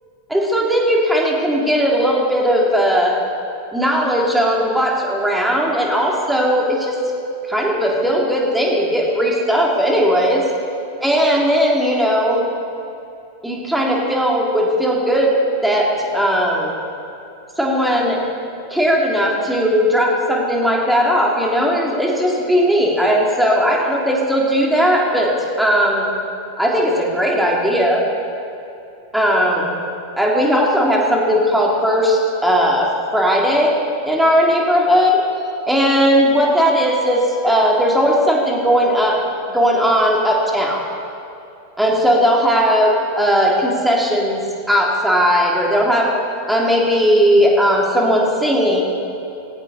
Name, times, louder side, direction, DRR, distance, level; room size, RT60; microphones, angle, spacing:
voice 1, 0.3-3.1 3.7-7.0 7.5-10.4 11.0-12.4 13.4-15.3 15.6-16.7 17.6-18.2 18.7-26.1 26.6-28.0 29.1-29.7 30.2-33.7 34.0-35.2 35.7-39.2 39.5-40.8 41.8-44.4 44.7-46.1 46.5-48.8, equal, 5° right, -2 dB, 3.2 m, -17 dB
19.5 x 17.0 x 4.3 m, 2.8 s
figure-of-eight pair, 90°, 0 cm